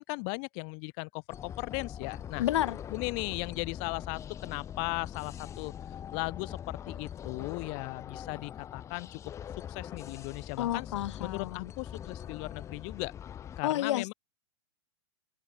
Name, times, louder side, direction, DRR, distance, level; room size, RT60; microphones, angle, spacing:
voice 1, 0.0-2.4 2.9-5.7 6.1-9.2 9.7-10.9 11.2-13.1 13.6-14.1, left 40 dB or more, 40° left, 0.7 m, -37 dB
sound 1, 1.3-13.6, left 9 dB, 20° left, 1.0 m, -43 dB
voice 2, 2.4-2.8 10.6-11.7 13.6-14.1, left 13 dB, 80° left, 0.4 m, -30 dB
hypercardioid pair, 140°, 15 cm